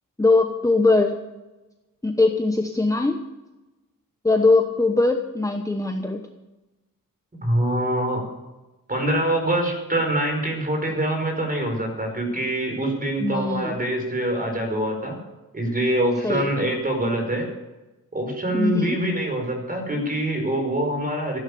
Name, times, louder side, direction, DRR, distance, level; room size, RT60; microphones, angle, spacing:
voice 1, 0.2-1.1 2.0-3.2 4.2-6.2 13.2-13.8 16.2-16.5 18.5-19.0, left 3 dB, 10° left, 5 dB, 1.0 m, -21 dB
voice 2, 7.4-8.2 8.9-15.2 15.5-17.5 18.1-21.4, right 1 dB, 25° right, 4 dB, 5.1 m, -24 dB
15.5 x 11.0 x 6.8 m, 1.1 s
cardioid pair, 100°, 33 cm